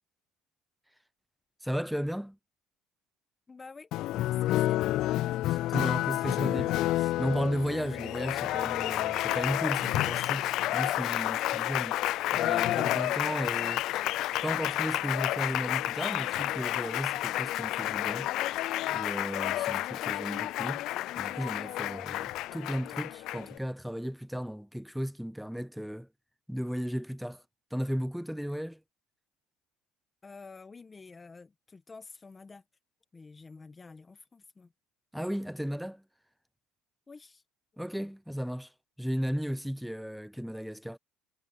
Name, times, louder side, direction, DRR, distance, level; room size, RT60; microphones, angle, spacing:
voice 1, 1.6-2.4 5.5-12.0 12.3-14.0 14.3-18.3 18.9-20.8 21.2-26.1 26.5-27.4 27.7-28.8 35.1-36.0 37.8-38.7 39.0-41.0, equal, ahead, 0.4 m, -35 dB
voice 2, 3.5-5.1 11.2-11.9 30.2-32.6 33.1-34.7 37.1-37.4, left 4 dB, 20° left, 1.4 m, -50 dB
Applause, 3.9-23.6, left 15 dB, 60° left, 0.4 m, -30 dB
cardioid pair, 120°, 0 cm